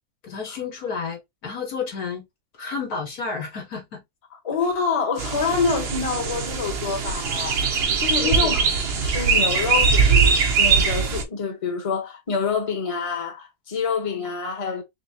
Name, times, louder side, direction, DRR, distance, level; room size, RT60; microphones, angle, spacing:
voice 1, 0.2-2.2 2.6-4.0 8.2-8.5, left 5 dB, 70° left, 1.6 m, -31 dB
voice 2, 4.3-14.8, left 5 dB, 25° left, 1.0 m, -27 dB
sound 1, 5.2-11.2, right 5 dB, 50° right, 0.9 m, -21 dB
3.9 x 3.4 x 2.7 m
omnidirectional pair, 1.6 m